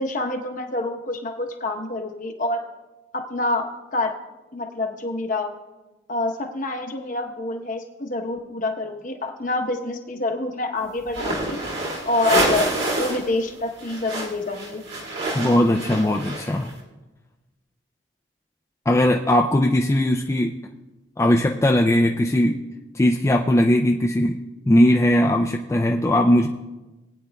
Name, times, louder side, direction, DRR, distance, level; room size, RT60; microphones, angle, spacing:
voice 1, 0.0-2.6 3.1-4.1 4.5-5.5 6.1-11.6 12.0-14.8, left 2 dB, 40° left, 4 dB, 0.9 m, -27 dB
sound 1, 11.1-13.3 13.5-16.7, right 2 dB, 55° right, 2.1 m, -27 dB
voice 2, 15.3-16.7 18.9-20.5 21.2-22.6 22.9-24.4 24.7-26.5, left 1 dB, 15° left, 1 dB, 0.3 m, -19 dB
19.5 x 9.2 x 2.3 m, 1.1 s
head